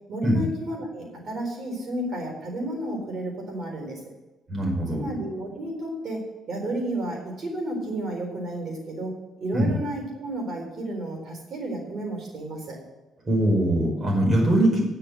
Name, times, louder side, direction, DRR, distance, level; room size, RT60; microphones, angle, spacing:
voice 1, 0.1-4.0 4.9-6.2 6.5-12.8, right 1 dB, 55° right, 1 dB, 4.0 m, -32 dB
voice 2, 4.5-5.1 9.5-9.7 13.2-14.8, right 1 dB, 40° right, 0 dB, 5.0 m, -22 dB
9.9 x 6.8 x 7.8 m, 1.1 s
cardioid pair, 90°, 0 cm